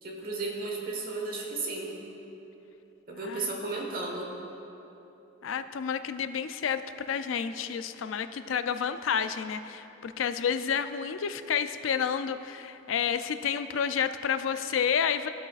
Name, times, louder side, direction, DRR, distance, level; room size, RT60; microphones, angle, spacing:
voice 1, 0.0-1.9 3.1-4.3, right 3 dB, 45° right, -1 dB, 1.4 m, -34 dB
voice 2, 3.2-3.6 5.4-15.3, left 7 dB, 85° left, 11 dB, 0.4 m, -30 dB
15.5 x 8.2 x 2.4 m, 3.0 s
head